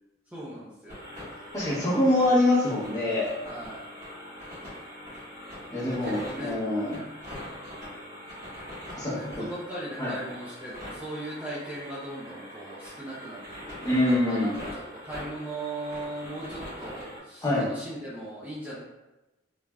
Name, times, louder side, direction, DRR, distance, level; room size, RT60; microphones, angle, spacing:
voice 1, 0.3-1.0 3.4-3.8 5.8-6.5 6.8-7.0 9.1-14.0 14.2-14.5 15.0-18.8, right 1 dB, 10° right, -9 dB, 0.5 m, -38 dB
sound 1, 0.9-17.2, left 1 dB, 45° right, 1.3 m, -42 dB
voice 2, 1.5-3.3 5.7-7.0 8.9-9.5 10.0-10.1 13.8-14.5 17.4-17.7, left 1 dB, 20° left, -8 dB, 0.9 m, -25 dB
3.2 x 2.4 x 2.2 m, 1.0 s
head